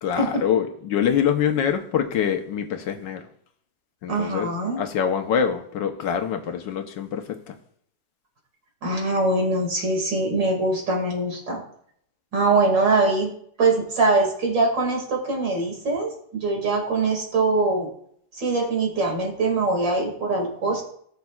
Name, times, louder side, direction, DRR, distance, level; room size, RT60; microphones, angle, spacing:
voice 1, 0.0-3.2 4.0-4.5 4.7-7.6, left 8 dB, 75° left, 1.5 m, -25 dB
voice 2, 4.1-4.8 8.8-11.6 12.3-13.3 13.6-17.9 18.3-20.8, right 3 dB, 70° right, 3.0 m, -23 dB
18.0 x 6.5 x 2.4 m
omnidirectional pair, 2.1 m